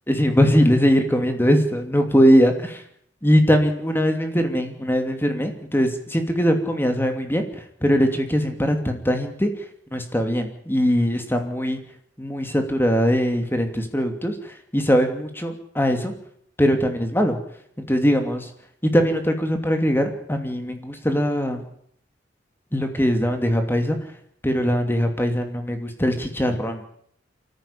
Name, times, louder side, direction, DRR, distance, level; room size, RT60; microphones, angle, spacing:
voice 1, 0.1-2.8 3.2-7.5 7.8-9.5 9.9-11.8 12.2-14.3 14.7-16.1 16.6-17.4 17.9-18.5 18.8-21.6 22.7-24.0 24.4-26.8, equal, 10° left, 6 dB, 2.8 m, -21 dB
24.5 x 14.5 x 8.8 m, 0.67 s
head